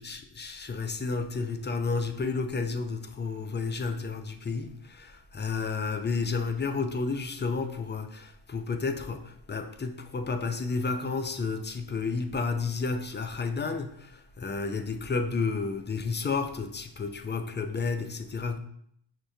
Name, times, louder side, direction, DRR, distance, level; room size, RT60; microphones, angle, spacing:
voice 1, 0.0-18.6, left 4 dB, 25° left, 0.3 m, -31 dB
5.9 x 2.1 x 2.6 m
cardioid pair, 50°, 50 cm